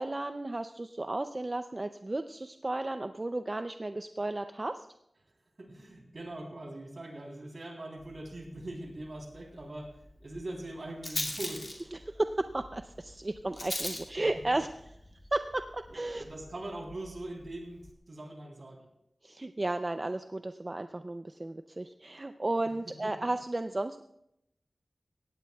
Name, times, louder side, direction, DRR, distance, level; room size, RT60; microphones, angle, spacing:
voice 1, 0.0-4.9 11.9-14.7 15.3-16.2 19.2-24.0, right 2 dB, 35° right, 9 dB, 0.4 m, -34 dB
voice 2, 5.6-10.0 10.2-11.6 15.9-18.9 23.0-23.1, right 1 dB, 60° right, 0 dB, 3.4 m, -42 dB
Rattle, 8.0-17.9, left 1 dB, 30° left, 2.3 m, -43 dB
17.5 x 16.0 x 2.3 m, 0.80 s
wide cardioid pair, 85°, 0 cm